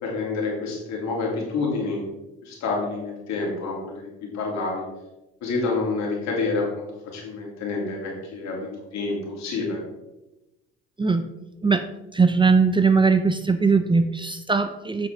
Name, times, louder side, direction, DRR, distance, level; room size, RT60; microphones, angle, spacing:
voice 1, 0.0-2.0 2.4-4.8 5.4-6.9 7.1-8.7 8.9-9.8, left 3 dB, 65° left, -2 dB, 2.9 m, -28 dB
voice 2, 11.0-11.3 11.6-11.9 12.1-15.1, right 4 dB, 15° right, 9 dB, 0.6 m, -20 dB
8.2 x 6.4 x 3.6 m, 0.98 s
hypercardioid pair, 65°, 30 cm